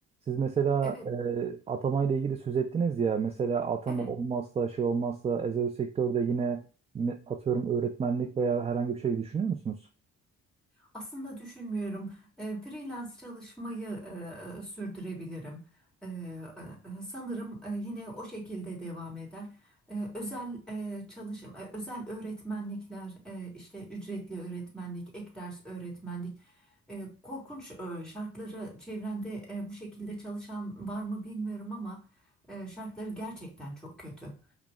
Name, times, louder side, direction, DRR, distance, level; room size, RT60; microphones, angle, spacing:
voice 1, 0.3-6.6 6.9-9.8, right 6 dB, 20° right, 0.3 m, -29 dB
voice 2, 10.9-15.6 16.0-19.5 19.9-26.4 26.9-32.0 32.5-34.4, right 2 dB, ahead, 1.8 m, -39 dB
4.8 x 2.1 x 3.5 m
cardioid pair, 90°, 30 cm